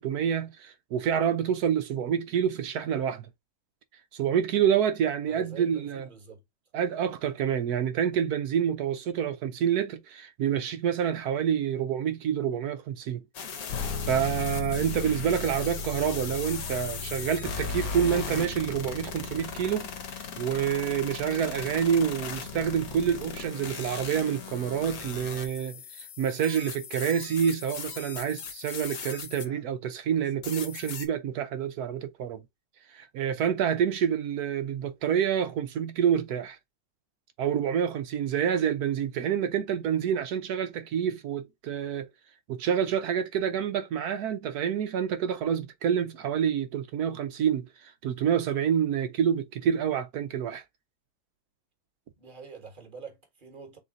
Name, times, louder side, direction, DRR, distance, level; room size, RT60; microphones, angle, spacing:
voice 1, 0.0-3.3 4.1-6.1 6.7-13.2 14.0-19.9 20.4-32.4 32.9-36.6 37.4-42.1 42.5-50.6, right 8 dB, 65° right, 1.0 m, -28 dB
voice 2, 5.2-6.4 16.0-16.4 52.2-53.8, right 6 dB, 30° right, 1.3 m, -46 dB
sound 1, 13.3-29.6 30.1-31.1, left 6 dB, 60° left, 1.2 m, -38 dB
sound 2, 13.7-20.6, left 5 dB, 75° left, 1.3 m, -37 dB
3.7 x 3.2 x 3.8 m
omnidirectional pair, 2.0 m